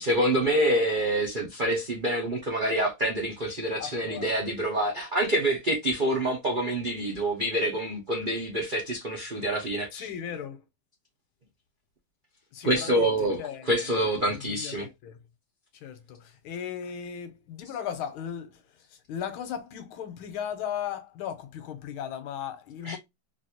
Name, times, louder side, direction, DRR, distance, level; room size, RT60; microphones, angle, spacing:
voice 1, 0.0-10.1 12.6-14.9 22.8-23.0, right 1 dB, 90° right, 0.4 m, -27 dB
voice 2, 3.8-4.4 9.9-10.6 12.5-15.2 15.8-18.6 18.9-23.0, left 8 dB, 90° left, 1.7 m, -37 dB
4.0 x 2.6 x 2.8 m
omnidirectional pair, 2.3 m